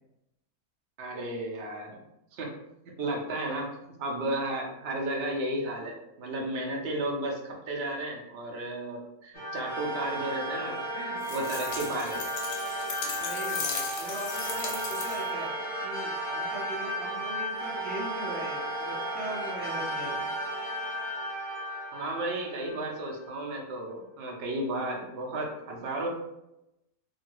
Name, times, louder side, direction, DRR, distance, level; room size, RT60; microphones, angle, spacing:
voice 1, 1.0-2.0 2.3-2.5 2.9-12.2 21.9-26.1, right 1 dB, 55° right, 0 dB, 0.8 m, -33 dB
sound 1, 9.3-23.1, right 1 dB, 40° left, 0.9 m, -34 dB
sound 2, 11.2-15.4, left 4 dB, 70° left, 1.0 m, -37 dB
voice 2, 13.2-15.5 15.8-20.3, right 1 dB, 15° left, -8 dB, 1.5 m, -40 dB
2.7 x 2.7 x 3.0 m, 0.88 s
omnidirectional pair, 1.6 m